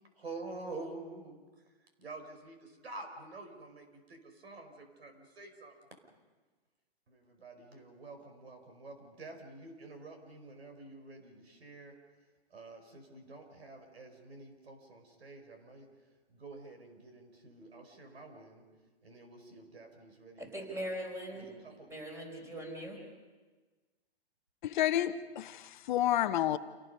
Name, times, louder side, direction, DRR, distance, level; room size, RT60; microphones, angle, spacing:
voice 1, 0.2-1.4 2.0-5.7 7.1-11.9 12.5-15.9 16.3-18.6 19.0-20.9 21.3-21.9, right 3 dB, 85° right, 5.0 m, -48 dB
voice 2, 20.4-21.5 21.9-23.0, equal, 10° right, 4.7 m, -40 dB
voice 3, 24.6-26.6, left 12 dB, 50° left, 0.9 m, -30 dB
28.5 x 18.5 x 5.5 m
hypercardioid pair, 140°, 31 cm